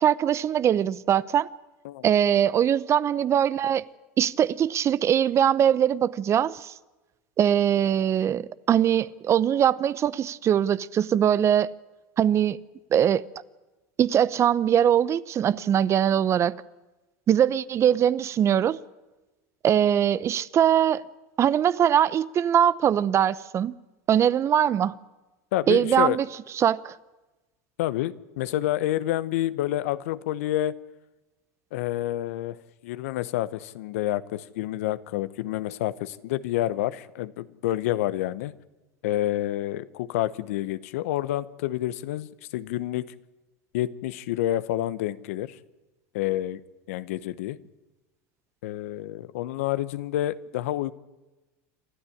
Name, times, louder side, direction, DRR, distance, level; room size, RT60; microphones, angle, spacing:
voice 1, 0.0-1.5 2.0-3.8 4.2-6.7 7.4-11.7 12.2-12.6 12.9-13.2 14.0-16.6 17.3-18.8 19.6-21.0 21.4-23.7 24.1-25.0 25.7-26.3 26.5-26.9, right 9 dB, 35° right, 0.7 m, -22 dB
voice 2, 25.5-26.2 27.8-30.8 31.7-32.6 32.8-38.5 39.0-43.1 43.7-45.6 46.1-46.6 46.9-47.6 48.6-50.9, left 14 dB, 75° left, 0.9 m, -28 dB
27.0 x 12.5 x 9.9 m
hypercardioid pair, 95°, 8 cm